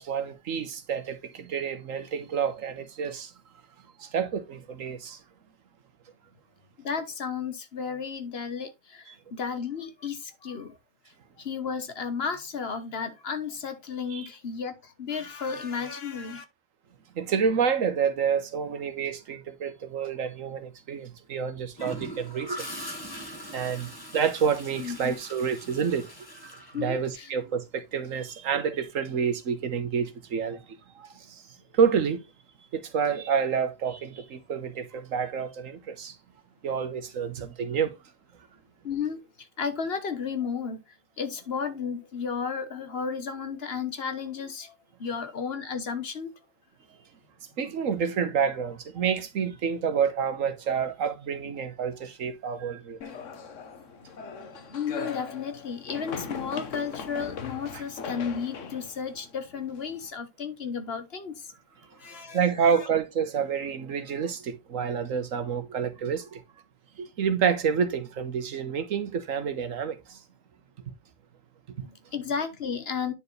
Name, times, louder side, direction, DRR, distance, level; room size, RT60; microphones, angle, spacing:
voice 1, 0.0-3.3 4.0-5.2 9.1-9.2 14.1-14.3 17.2-22.6 23.5-26.1 26.8-31.4 31.7-32.2 32.7-36.1 36.6-37.9 47.6-53.0 62.3-66.4 67.0-70.2 71.8-71.9, right 7 dB, 85° right, 1.5 m, -28 dB
voice 2, 6.8-10.8 11.4-16.4 24.8-25.1 26.7-27.3 38.8-46.3 54.0-54.1 54.7-61.5 61.9-62.9 71.8-73.1, left 6 dB, 50° left, 1.3 m, -33 dB
Gurgling / Toilet flush, 21.8-27.5 29.5-29.8, equal, 15° left, 1.6 m, -41 dB
sound 1, 53.0-60.1, left 5 dB, 70° left, 1.3 m, -39 dB
9.8 x 4.7 x 3.2 m
omnidirectional pair, 1.3 m